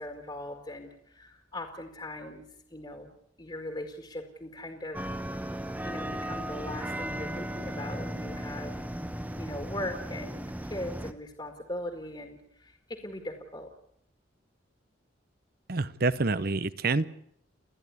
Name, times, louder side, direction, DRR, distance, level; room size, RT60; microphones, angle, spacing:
voice 1, 0.0-3.1 3.4-5.5 5.8-8.7 9.4-13.7, left 1 dB, 20° left, 4 dB, 2.0 m, -40 dB
sound 1, 4.9-11.1, right 1 dB, 10° right, 0.9 m, -36 dB
voice 2, 15.7-17.0, right 3 dB, 50° right, 16 dB, 0.8 m, -27 dB
29.5 x 11.0 x 9.7 m, 0.72 s
head